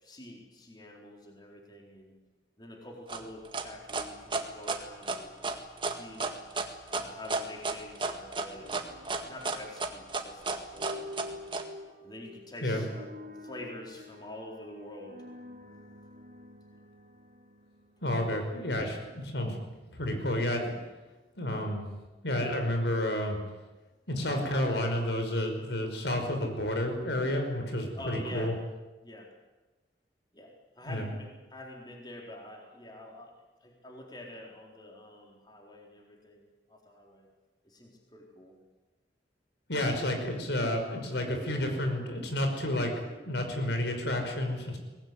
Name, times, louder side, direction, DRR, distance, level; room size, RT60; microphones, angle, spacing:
voice 1, 0.0-2.1 2.6-5.6 5.9-6.3 6.9-11.4 12.0-15.2 16.7-16.9 27.9-28.5 29.0-29.3 30.3-33.3 33.6-37.3 37.6-38.6, left 1 dB, 25° left, 0 dB, 4.2 m, -47 dB
sound 1, 3.1-11.6, right 3 dB, 25° right, 1.9 m, -32 dB
sound 2, 8.5-18.6, left 1 dB, 50° right, 2.6 m, -48 dB
voice 2, 18.0-19.6 19.9-20.7 21.4-21.9 22.2-23.4 24.1-28.6 30.8-31.1 39.7-44.8, left 1 dB, 80° left, 4 dB, 5.5 m, -30 dB
23.0 x 19.5 x 9.7 m, 1.1 s
head